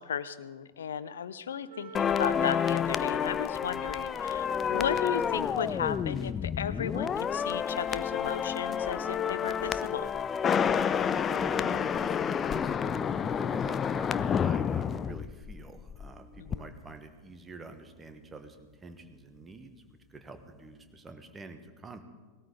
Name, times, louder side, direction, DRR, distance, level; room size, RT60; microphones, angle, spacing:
voice 1, 0.0-10.1 16.4-16.7, left 8 dB, 65° left, 15 dB, 0.6 m, -35 dB
Wind instrument woodwind instrument, 1.7-6.8, right 7 dB, 55° right, 1.2 m, -51 dB
sound 1, 1.9-16.1 16.3-16.6, left 7 dB, 25° left, 0.4 m, -29 dB
voice 2, 10.7-19.8 20.1-22.0, right 3 dB, 15° right, 7 dB, 1.3 m, -46 dB
19.5 x 13.0 x 3.9 m, 1.4 s
figure-of-eight pair, 90°, 0 cm